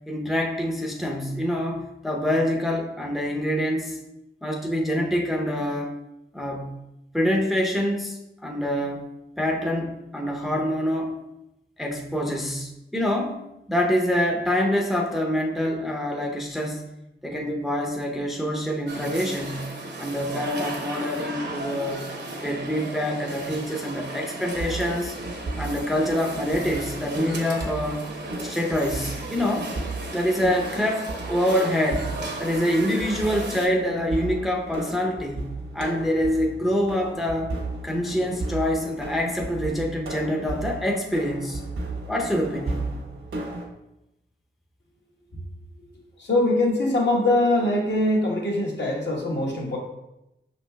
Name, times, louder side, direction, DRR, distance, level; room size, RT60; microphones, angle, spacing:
voice 1, 0.1-4.0 4.4-6.0 6.3-6.8 7.1-9.1 9.4-11.1 11.8-13.4 13.7-16.8 17.2-22.1 22.4-25.1 25.6-28.1 28.4-29.7 30.1-32.1 32.4-37.6 37.8-41.6 42.1-42.9, equal, ahead, 0 dB, 0.6 m, -26 dB
sound 1, 18.9-33.7, right 2 dB, 55° right, 0.9 m, -35 dB
sound 2, 24.5-43.7, right 2 dB, 75° right, 1.1 m, -35 dB
voice 2, 46.2-49.8, left 1 dB, 60° left, -2 dB, 1.2 m, -22 dB
5.6 x 4.0 x 2.2 m, 0.89 s
cardioid pair, 65°, 20 cm